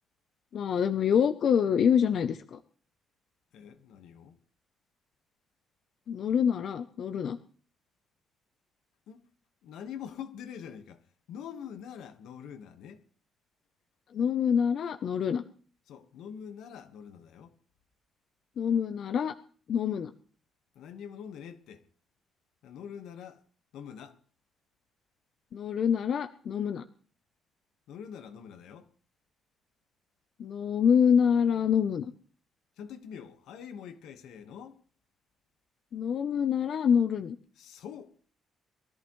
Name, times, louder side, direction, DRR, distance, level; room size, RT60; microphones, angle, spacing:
voice 1, 0.5-2.6 6.1-7.4 14.1-15.4 18.6-19.3 19.7-20.1 25.5-26.8 30.4-32.0 35.9-37.4, left 7 dB, 50° left, 0.7 m, -26 dB
voice 2, 3.5-4.4 9.1-9.3 9.6-13.0 15.9-17.6 20.7-21.8 22.6-23.4 23.7-24.2 27.9-28.9 32.8-34.8 37.6-38.1, left 8 dB, 80° left, 1.4 m, -44 dB
22.5 x 14.0 x 3.1 m
cardioid pair, 165°, 0 cm